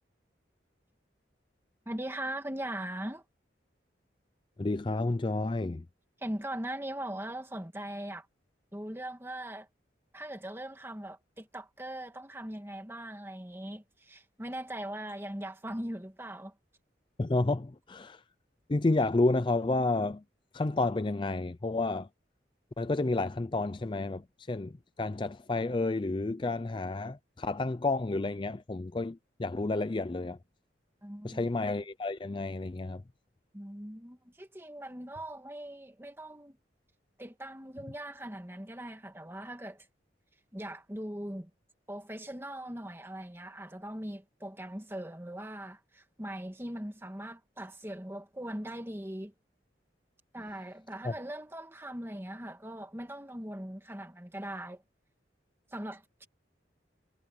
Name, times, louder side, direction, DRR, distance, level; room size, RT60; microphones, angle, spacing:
voice 1, 1.8-3.2 6.2-8.3 8.7-9.7 10.1-16.5 31.0-31.4 33.5-36.6 37.2-39.9 40.5-41.5 41.9-49.3 50.3-54.8 55.7-56.3, right 1 dB, 15° right, 1.6 m, -40 dB
voice 2, 4.6-5.9 17.2-18.2 18.7-20.2 20.5-22.1 22.8-30.4 31.2-33.0 51.0-51.1, left 2 dB, 25° left, 0.4 m, -30 dB
head